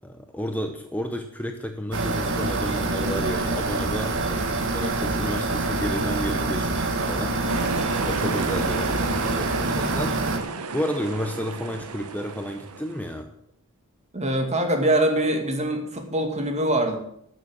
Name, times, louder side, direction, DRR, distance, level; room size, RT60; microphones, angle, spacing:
voice 1, 0.0-7.4 8.0-10.2 10.7-13.3, equal, 5° left, 5 dB, 0.8 m, -31 dB
sound 1, 1.9-10.4, right 2 dB, 60° right, 1.8 m, -26 dB
sound 2, 7.5-13.2, right 4 dB, 85° right, 1.0 m, -33 dB
voice 2, 14.1-17.0, right 1 dB, 30° right, 4 dB, 2.2 m, -23 dB
12.5 x 7.1 x 7.4 m, 0.74 s
head